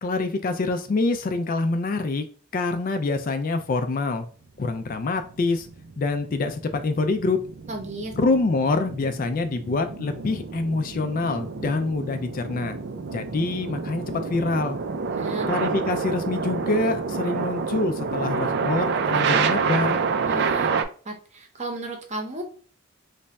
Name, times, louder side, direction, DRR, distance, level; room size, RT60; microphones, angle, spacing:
voice 1, 0.0-2.3 2.5-4.3 4.6-5.7 6.0-7.4 8.2-12.8 13.1-14.8 15.5-20.0, left 3 dB, 40° left, 8 dB, 0.3 m, -25 dB
sound 1, 4.7-20.8, right 5 dB, 50° right, 0.4 m, -28 dB
voice 2, 7.7-8.1 15.1-15.6 20.3-20.7 21.0-22.4, right 2 dB, 35° right, 3 dB, 0.7 m, -34 dB
3.2 x 2.2 x 4.0 m, 0.42 s
head